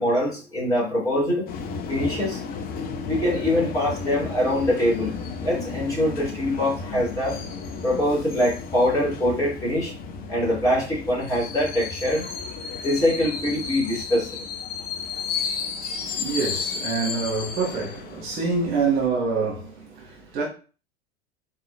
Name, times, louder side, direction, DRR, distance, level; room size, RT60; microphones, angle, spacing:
voice 1, 0.0-1.4 1.9-2.4 3.1-7.4 7.8-9.9 10.3-12.2 12.8-14.5, left 1 dB, 10° left, 2.5 m, -23 dB
sound 1, 1.5-19.1, left 5 dB, 30° left, 0.7 m, -33 dB
voice 2, 15.2-20.4, right 4 dB, 40° right, 1.7 m, -27 dB
4.2 x 3.7 x 3.2 m
figure-of-eight pair, 80°, 32 cm